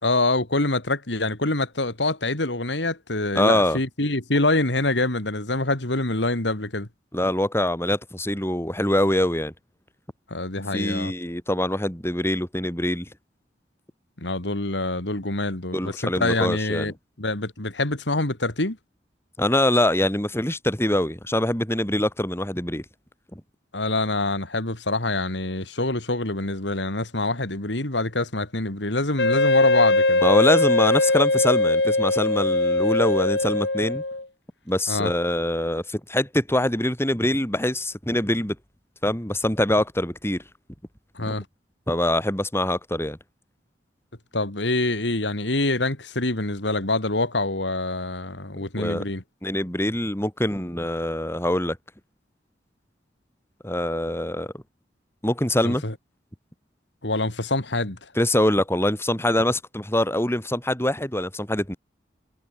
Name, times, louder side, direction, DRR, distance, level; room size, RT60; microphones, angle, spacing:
voice 1, 0.0-6.9 10.3-11.1 14.2-18.8 23.7-30.2 34.9-35.1 41.2-41.5 44.3-49.2 55.6-55.9 57.0-58.0, left 2 dB, 85° left, 3.6 m, -25 dB
voice 2, 3.4-3.8 7.1-9.5 10.7-13.1 15.7-16.9 19.4-22.8 30.2-34.0 34.7-38.6 39.0-40.4 41.2-41.3 41.9-43.2 48.8-49.0 49.4-51.8 53.6-54.5 55.2-55.8 58.2-61.8, left 1 dB, 15° left, 5.5 m, -24 dB
Wind instrument woodwind instrument, 29.2-34.2, left 2 dB, 70° left, 4.1 m, -21 dB
head